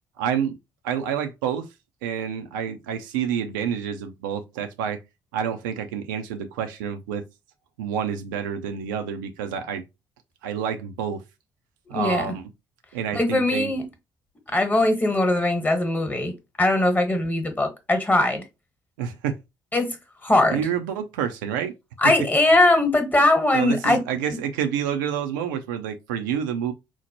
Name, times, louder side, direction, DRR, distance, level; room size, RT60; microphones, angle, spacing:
voice 1, 0.2-0.6 0.8-1.7 2.0-5.0 5.3-7.2 7.8-9.8 10.4-11.2 11.9-12.4 12.9-13.7 19.0-19.4 20.5-21.7 23.5-26.7, right 8 dB, 70° right, 0.4 m, -28 dB
voice 2, 11.9-12.3 13.1-13.9 14.5-16.3 16.6-18.5 19.7-20.6 22.0-24.0, left 2 dB, 15° left, 1.1 m, -21 dB
4.3 x 2.1 x 2.8 m
figure-of-eight pair, 45°, 11 cm